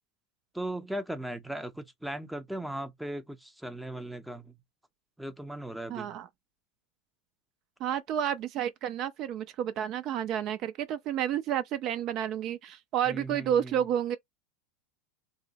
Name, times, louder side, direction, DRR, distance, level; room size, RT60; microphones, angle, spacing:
voice 1, 0.5-4.6 5.2-6.2 13.1-13.9, right 1 dB, ahead, 0.6 m, -38 dB
voice 2, 5.9-6.3 7.8-14.2, right 10 dB, 50° right, 0.4 m, -30 dB
2.7 x 2.0 x 3.9 m
hypercardioid pair, 105°, 0 cm